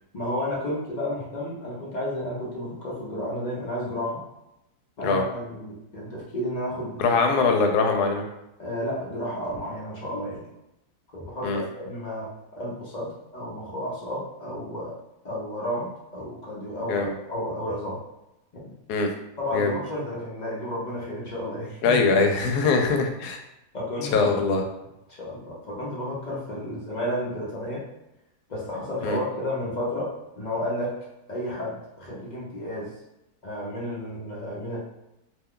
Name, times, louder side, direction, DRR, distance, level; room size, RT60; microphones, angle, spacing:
voice 1, 0.1-4.2 5.0-7.5 8.6-10.4 11.1-12.3 12.6-14.9 15.2-18.0 18.5-18.7 19.4-22.0 23.7-24.3 25.2-27.9 28.5-31.0 31.3-32.9 33.4-34.8, left 1 dB, 55° left, -5 dB, 0.5 m, -32 dB
voice 2, 7.0-8.2 11.4-11.6 16.9-17.1 18.9-19.1 19.5-19.8 21.8-23.4 24.1-24.6 29.0-29.2, left 4 dB, 80° left, 3 dB, 1.1 m, -22 dB
2.7 x 2.2 x 3.6 m, 0.89 s
omnidirectional pair, 1.7 m